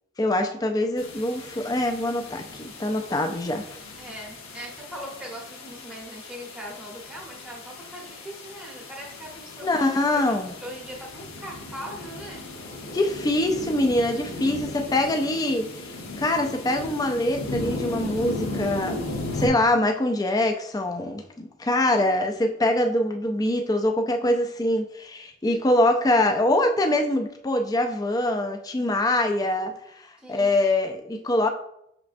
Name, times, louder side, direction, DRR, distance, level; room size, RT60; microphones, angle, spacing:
voice 1, 0.2-3.6 9.6-10.5 12.9-15.7 16.2-29.7 30.3-31.5, left 1 dB, 20° left, 5 dB, 0.4 m, -24 dB
sound 1, 1.0-19.5, left 2 dB, 80° left, 0.9 m, -36 dB
voice 2, 4.0-12.4 21.8-22.1 30.2-30.6, equal, 5° right, -2 dB, 0.9 m, -40 dB
5.9 x 3.2 x 2.5 m, 0.77 s
head